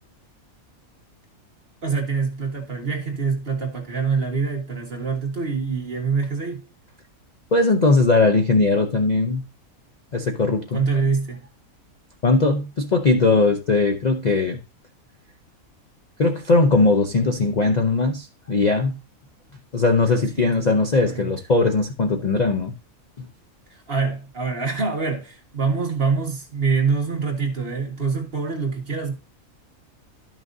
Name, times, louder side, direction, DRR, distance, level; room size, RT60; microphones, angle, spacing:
voice 1, 1.8-6.6 10.7-11.4 20.1-20.6 21.1-21.3 23.7-29.1, right 5 dB, 40° right, 2.0 m, -25 dB
voice 2, 7.5-9.4 10.1-10.8 12.2-14.6 16.2-19.0 19.7-22.7 23.2-23.3, left 3 dB, 40° left, 0.7 m, -19 dB
12.0 x 6.1 x 2.6 m
omnidirectional pair, 1.5 m